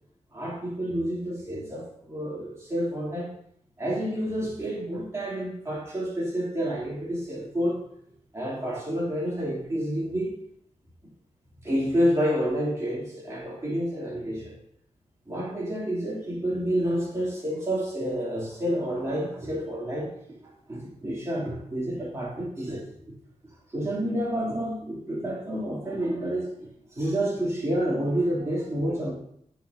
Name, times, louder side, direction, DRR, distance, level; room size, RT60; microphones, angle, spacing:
voice 1, 0.3-3.3 3.8-7.8 8.3-10.3 11.6-14.5 15.3-20.1 20.7-22.8 23.7-29.1, equal, 25° right, -5 dB, 3.1 m, -29 dB
8.3 x 6.4 x 2.8 m, 0.70 s
wide cardioid pair, 105°, 12 cm